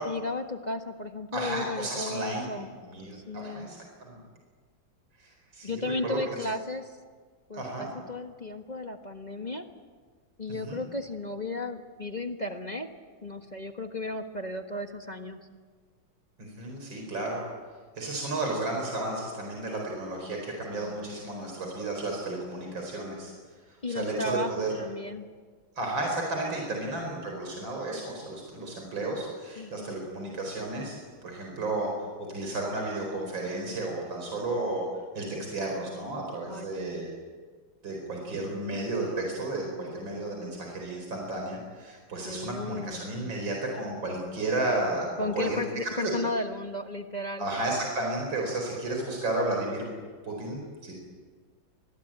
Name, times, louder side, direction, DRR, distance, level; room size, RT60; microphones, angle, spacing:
voice 1, 0.0-2.7 3.1-3.7 5.6-7.0 7.5-9.7 10.4-12.9 13.2-15.4 20.7-21.0 23.8-25.3 26.7-26.9 29.6-30.0 36.5-37.0 42.2-43.1 45.2-47.5, left 2 dB, 25° left, 5 dB, 1.3 m, -34 dB
voice 2, 1.3-2.5 2.8-4.2 5.2-6.2 7.5-7.9 10.5-10.8 16.4-17.4 18.0-23.3 23.7-24.7 25.8-31.0 31.2-34.8 35.1-37.1 37.8-46.1 47.4-49.8 50.2-50.9, right 2 dB, 75° right, 0 dB, 5.4 m, -33 dB
27.0 x 21.0 x 8.9 m, 1.5 s
omnidirectional pair, 2.1 m